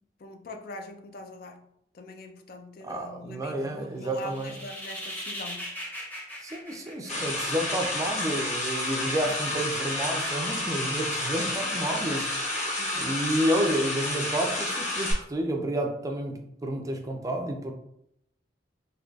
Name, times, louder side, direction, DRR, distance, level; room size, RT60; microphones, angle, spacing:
voice 1, 0.2-1.7 1.9-5.8 9.2-9.4 12.8-13.1, left 1 dB, 60° left, 5 dB, 0.4 m, -43 dB
voice 2, 2.8-4.5 6.4-17.7, right 1 dB, 20° right, 3 dB, 0.4 m, -30 dB
sound 1, 4.1-7.7, equal, 10° left, 0.7 m, -39 dB
sound 2, 7.1-15.1, left 1 dB, 45° left, 0.9 m, -30 dB
3.8 x 2.7 x 2.3 m, 0.75 s
head